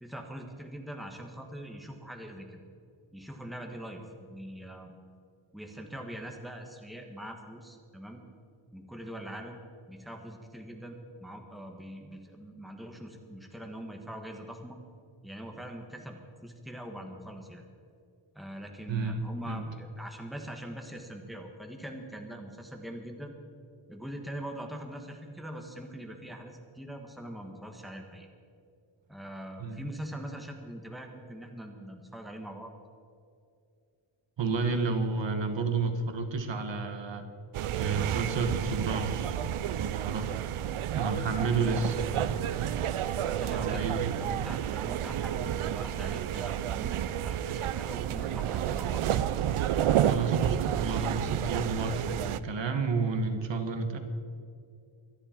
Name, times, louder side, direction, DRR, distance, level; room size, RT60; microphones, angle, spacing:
voice 1, 0.0-2.6 3.1-4.9 5.5-8.2 8.7-9.6 9.9-14.8 15.2-17.6 18.3-23.3 23.9-28.3 29.1-32.7 43.3-47.0 47.2-49.3, right 1 dB, ahead, 3 dB, 1.4 m, -42 dB
voice 2, 18.9-19.2 19.5-19.6 29.6-29.8 34.4-37.2 37.7-39.4 39.8-40.3 40.9-42.0 43.5-44.1 50.0-54.0, right 4 dB, 60° right, 7 dB, 1.3 m, -31 dB
sound 1, 37.5-52.4, right 10 dB, 85° right, 0.6 m, -30 dB
24.5 x 10.0 x 4.4 m, 2.4 s
wide cardioid pair, 170°, 49 cm